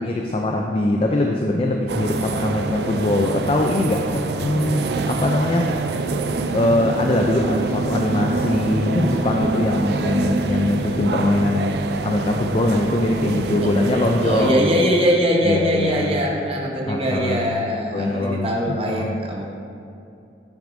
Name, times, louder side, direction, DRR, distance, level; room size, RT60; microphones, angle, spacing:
voice 1, 0.0-5.7 6.5-14.8 15.4-16.1 16.9-17.6 17.9-19.2, left 2 dB, 30° left, 2 dB, 0.4 m, -22 dB
sound 1, 1.9-14.5, right 3 dB, 65° right, 0.4 m, -25 dB
voice 2, 14.2-19.4, equal, 35° right, -1 dB, 0.8 m, -21 dB
10.0 x 6.1 x 2.6 m, 2.6 s
head